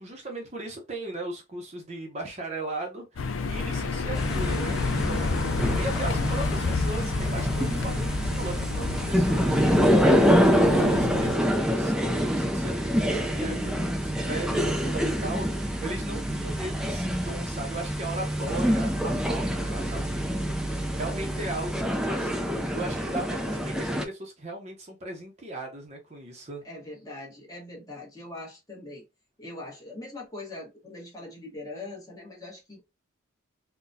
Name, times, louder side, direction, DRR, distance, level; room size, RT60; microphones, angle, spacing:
voice 1, 0.0-26.6, right 2 dB, 35° right, 0.7 m, -37 dB
sound 1, 3.2-11.4, left 4 dB, 75° left, 0.4 m, -30 dB
sound 2, 4.1-24.0, equal, 5° right, 0.4 m, -26 dB
voice 2, 19.5-19.9 26.6-29.0 29.4-32.8, left 2 dB, 15° left, 1.1 m, -42 dB
3.9 x 2.2 x 2.6 m
head